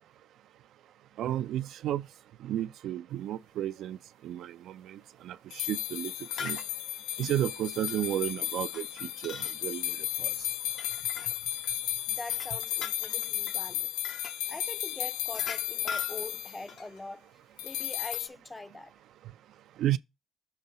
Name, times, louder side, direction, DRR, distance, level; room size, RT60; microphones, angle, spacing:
voice 1, 1.2-2.1 2.4-6.1 6.4-6.6 7.2-10.5 19.8-20.0, right 12 dB, 70° right, 0.4 m, -33 dB
sound 1, 5.5-16.6 17.6-18.3, left 12 dB, 90° left, 0.3 m, -34 dB
sound 2, 6.2-6.7 7.2-7.4 7.9-8.0 8.5-9.6 10.7-11.7 12.2-13.6 14.0-14.4 15.3-17.0 17.8-18.2, left 5 dB, 60° left, 0.7 m, -41 dB
voice 2, 12.1-13.9 14.5-17.3 17.6-18.9, left 2 dB, 20° left, 0.5 m, -43 dB
6.8 x 2.9 x 5.4 m
supercardioid pair, 80°, 0 cm